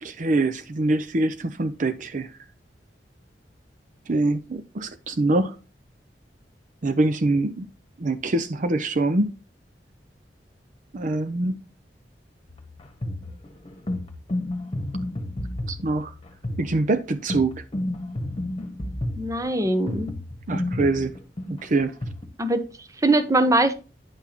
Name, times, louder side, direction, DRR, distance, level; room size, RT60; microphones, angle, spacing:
voice 1, 0.0-2.3 4.1-5.6 6.8-7.7 8.0-9.3 10.9-11.5 15.7-16.1 16.6-17.5 20.5-21.2 21.5-22.0, right 2 dB, 45° right, 0.6 m, -24 dB
sound 1, 12.5-22.2, left 1 dB, 30° left, 1.4 m, -31 dB
voice 2, 19.2-20.1 22.4-22.6 23.0-23.7, right 2 dB, 20° right, 0.8 m, -21 dB
9.7 x 6.0 x 2.9 m
head